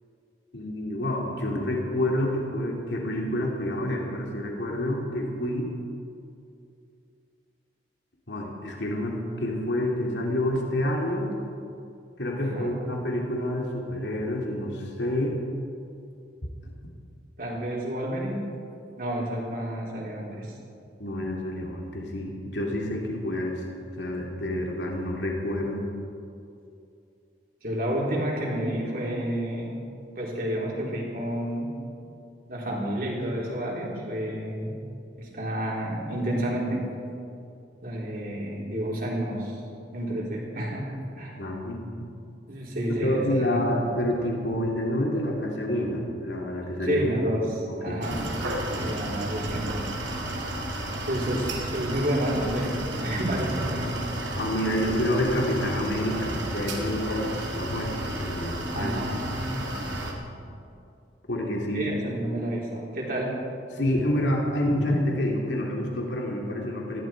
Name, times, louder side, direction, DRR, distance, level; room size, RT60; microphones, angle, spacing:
voice 1, 0.5-5.7 8.3-11.4 12.2-15.4 21.0-23.6 24.0-25.9 41.4-42.1 42.9-47.0 47.7-48.3 54.4-58.9 59.3-59.4 61.3-61.9 63.7-67.0, left 1 dB, 75° left, -1 dB, 2.6 m, -28 dB
voice 2, 12.4-12.7 17.4-18.4 19.0-20.5 27.6-29.8 30.2-31.7 32.5-34.7 35.2-36.8 37.8-39.6 39.9-40.8 41.2-41.3 42.5-43.6 46.8-48.2 48.8-49.9 51.1-54.1 56.1-56.4 58.7-60.5 61.7-63.3, right 1 dB, 50° right, -4 dB, 4.2 m, -30 dB
sound 1, 48.0-60.1, right 1 dB, 80° right, 2.6 m, -32 dB
19.5 x 15.5 x 4.6 m, 2.5 s
head